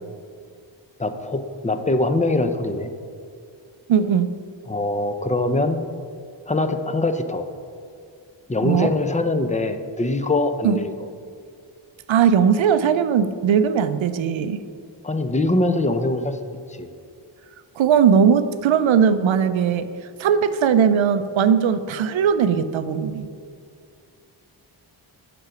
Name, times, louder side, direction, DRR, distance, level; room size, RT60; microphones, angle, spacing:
voice 1, 1.0-2.9 4.7-5.8 6.5-7.5 8.5-10.9 15.0-16.4 16.7-16.9, left 2 dB, 15° left, 8 dB, 0.6 m, -23 dB
voice 2, 3.9-4.3 8.6-8.9 10.6-10.8 12.1-14.6 17.8-19.9 20.2-23.3, right 7 dB, 65° right, 12 dB, 0.6 m, -19 dB
6.5 x 6.1 x 4.9 m, 2.3 s
cardioid pair, 40°, 50 cm